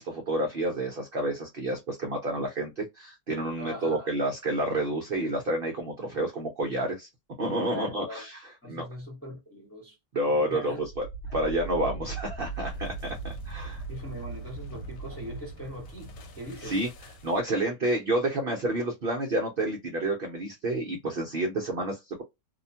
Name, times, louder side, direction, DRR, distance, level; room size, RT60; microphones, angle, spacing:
voice 1, 0.0-7.1 7.4-8.4 8.7-8.9 10.1-11.1 11.3-13.8 16.6-16.9 17.2-22.2, right 1 dB, 55° right, 0.6 m, -29 dB
voice 2, 3.6-4.2 7.7-8.3 8.6-10.0 10.4-10.8 11.3-11.4 13.9-16.8, equal, 10° left, 0.9 m, -41 dB
sound 1, 10.7-17.6, right 4 dB, 80° left, 1.3 m, -39 dB
2.8 x 2.1 x 2.7 m
omnidirectional pair, 1.8 m